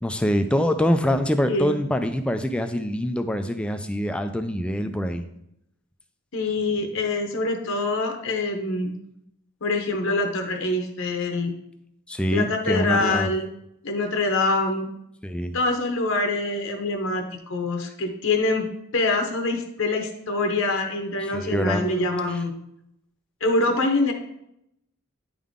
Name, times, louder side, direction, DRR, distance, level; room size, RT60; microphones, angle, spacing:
voice 1, 0.0-5.3 12.1-13.3 15.2-15.6 21.3-21.9, equal, 5° left, 8 dB, 0.3 m, -24 dB
voice 2, 6.3-9.0 9.6-11.5 12.3-13.5 13.8-14.9 15.5-18.7 18.9-22.5 23.4-24.1, left 2 dB, 60° left, 4 dB, 0.8 m, -25 dB
9.6 x 3.7 x 3.6 m, 0.79 s
head